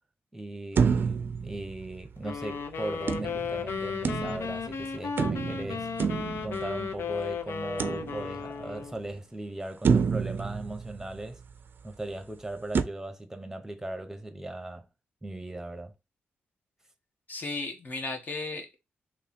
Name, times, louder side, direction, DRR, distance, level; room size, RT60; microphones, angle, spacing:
voice 1, 0.3-5.9 6.4-11.4 11.8-14.9 15.2-15.9, right 2 dB, 10° right, 0.9 m, -38 dB
sound 1, 0.8-2.4 3.1-4.7 5.2-7.1 7.8-8.6 9.1-9.2 9.8-11.5 12.7-12.8, right 6 dB, 55° right, 0.5 m, -29 dB
sound 2, 2.2-9.0, left 5 dB, 70° left, 0.6 m, -35 dB
voice 2, 17.3-18.8, left 3 dB, 45° left, 1.4 m, -35 dB
3.3 x 3.1 x 4.3 m
cardioid pair, 95°, 4 cm